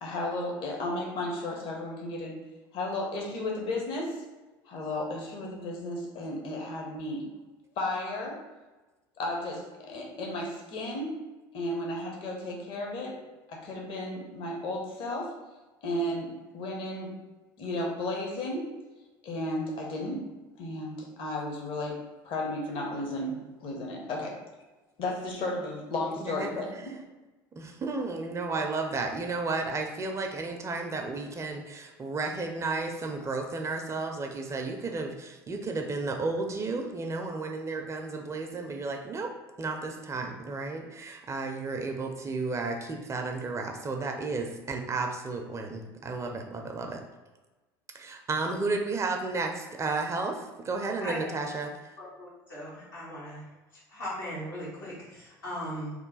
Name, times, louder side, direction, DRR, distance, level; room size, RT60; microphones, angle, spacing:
voice 1, 0.0-2.4 2.7-4.2 4.7-7.3 7.8-8.4 9.2-11.2 11.5-13.2 13.5-15.3 15.8-17.1 17.6-18.7 19.2-20.3 20.5-22.0 22.2-24.4 25.0-26.7, left 1 dB, 55° left, 0 dB, 0.9 m, -33 dB
voice 2, 26.2-26.9 27.6-47.0 47.9-51.9, right 3 dB, 25° right, 4 dB, 0.5 m, -33 dB
voice 3, 51.0-51.3 52.0-53.4 53.9-55.9, equal, 85° left, -8 dB, 1.5 m, -38 dB
3.0 x 2.2 x 3.9 m, 1.2 s
hypercardioid pair, 75°, 11 cm